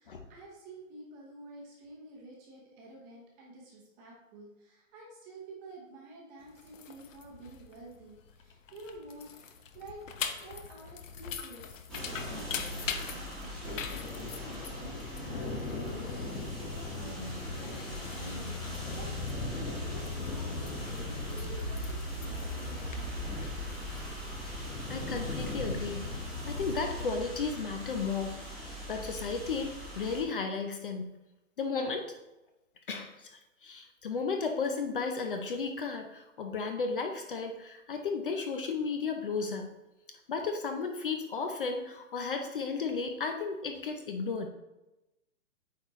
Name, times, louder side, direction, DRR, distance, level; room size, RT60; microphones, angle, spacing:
voice 1, 0.0-9.3 9.7-10.0 10.4-23.3, right 2 dB, 15° right, -3 dB, 0.9 m, -50 dB
sound 1, 6.4-24.0, left 7 dB, 75° left, 0.9 m, -44 dB
sound 2, 11.9-30.2, left 1 dB, ahead, 1.3 m, -39 dB
sound 3, 13.6-26.8, left 2 dB, 90° left, 1.6 m, -41 dB
voice 2, 24.9-28.4 28.9-31.2 31.6-32.1 32.9-39.7 40.3-44.5, left 4 dB, 45° left, 5 dB, 0.6 m, -34 dB
8.5 x 4.2 x 3.0 m, 0.98 s
hypercardioid pair, 165°, 39 cm